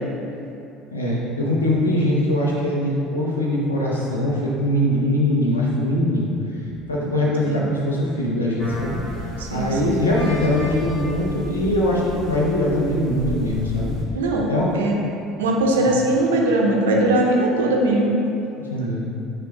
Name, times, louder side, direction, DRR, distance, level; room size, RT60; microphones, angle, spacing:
voice 1, 0.9-6.3 6.6-9.0 9.5-13.9 14.5-14.7 15.8-16.0 18.7-19.1, left 1 dB, 85° left, -4 dB, 0.6 m, -22 dB
sound 1, 8.6-14.0, left 1 dB, 60° left, 1.3 m, -33 dB
voice 2, 9.4-10.0 14.1-14.9 15.4-18.2, right 1 dB, 75° right, -1 dB, 0.5 m, -20 dB
4.4 x 2.4 x 4.6 m, 2.8 s
figure-of-eight pair, 65°, 0 cm